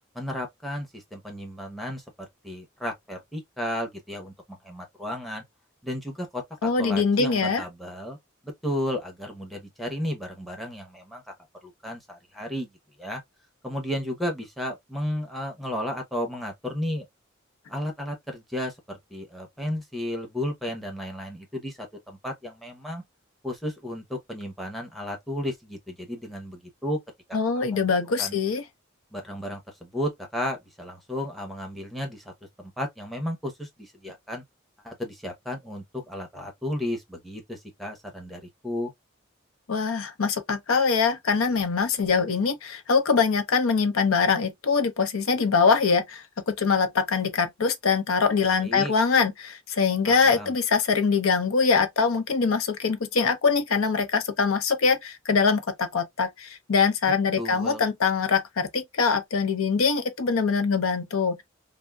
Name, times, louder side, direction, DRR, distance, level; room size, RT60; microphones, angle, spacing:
voice 1, 0.1-5.4 5.8-8.2 8.4-11.3 11.6-12.7 13.0-13.2 13.6-17.0 17.7-23.0 23.4-27.0 27.6-27.9 28.2-28.4 29.1-32.3 32.6-34.4 34.8-38.9 48.4-48.9 50.0-50.5 57.4-57.8, left 1 dB, ahead, 0.8 m, -33 dB
voice 2, 6.6-7.6 27.3-28.6 39.7-61.4, left 5 dB, 85° left, 0.6 m, -23 dB
3.5 x 2.0 x 2.2 m
head